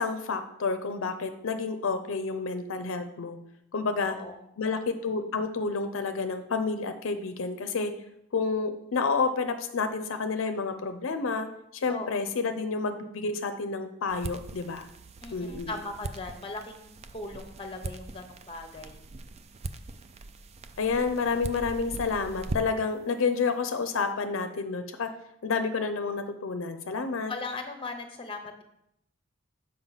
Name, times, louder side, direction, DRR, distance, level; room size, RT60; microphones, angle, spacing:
voice 1, 0.0-3.4 3.7-4.2 4.6-7.9 8.3-11.5 11.7-14.9 15.3-15.7 20.8-25.1 25.4-27.3, left 4 dB, 75° left, 8 dB, 0.5 m, -29 dB
voice 2, 3.9-4.5 11.9-12.3 15.2-19.0 27.3-28.6, left 3 dB, 25° left, 6 dB, 0.8 m, -39 dB
sound 1, 14.1-22.9, right 3 dB, 30° right, 0.4 m, -41 dB
7.1 x 5.1 x 4.0 m, 0.79 s
head